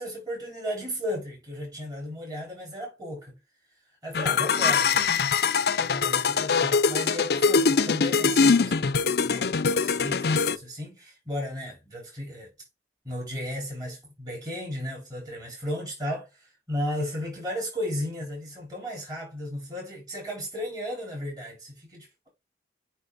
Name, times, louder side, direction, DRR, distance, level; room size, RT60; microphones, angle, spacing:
voice 1, 0.0-3.3 4.0-12.5 13.0-22.3, left 1 dB, 20° right, 4.8 m, -35 dB
sound 1, 4.1-10.6, left 5 dB, 65° left, 0.5 m, -23 dB
10.5 x 3.7 x 2.6 m
head